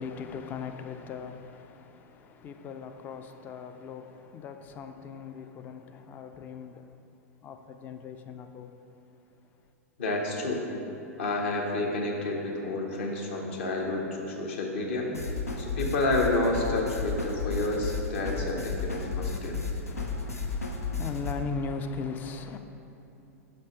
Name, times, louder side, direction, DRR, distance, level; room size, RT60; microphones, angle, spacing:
voice 1, 0.0-6.9 7.4-8.7 19.9-22.6, left 5 dB, 25° left, 0.4 m, -39 dB
voice 2, 10.0-10.6 11.2-15.1 15.6-19.6, left 2 dB, 55° left, 1.2 m, -29 dB
sound 1, 15.1-21.3, left 4 dB, 80° left, 0.7 m, -33 dB
6.5 x 5.4 x 4.7 m
figure-of-eight pair, 95°, 8 cm